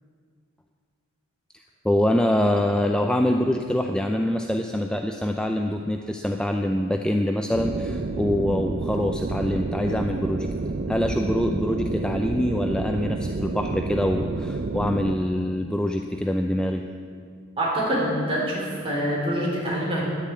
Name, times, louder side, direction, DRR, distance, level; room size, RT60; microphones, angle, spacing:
voice 1, 1.8-10.5 10.9-16.9, left 1 dB, 5° left, 4 dB, 0.4 m, -24 dB
sound 1, 7.5-15.2, right 3 dB, 45° right, 0.5 m, -29 dB
voice 2, 17.6-20.0, equal, 25° right, -5 dB, 4.2 m, -25 dB
10.5 x 10.0 x 8.3 m, 2.2 s
head